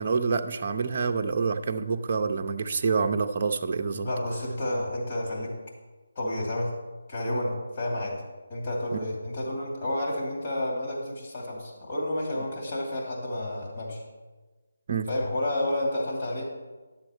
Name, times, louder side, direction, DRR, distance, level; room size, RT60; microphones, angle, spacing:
voice 1, 0.0-4.1 8.9-9.0 14.9-15.1, right 5 dB, 40° right, 5 dB, 0.6 m, -27 dB
voice 2, 4.0-5.5 6.2-6.7 7.1-8.2 8.5-14.0 15.1-16.5, left 1 dB, 40° left, -3 dB, 2.6 m, -30 dB
10.5 x 7.1 x 4.4 m, 1.3 s
figure-of-eight pair, 160°, 0 cm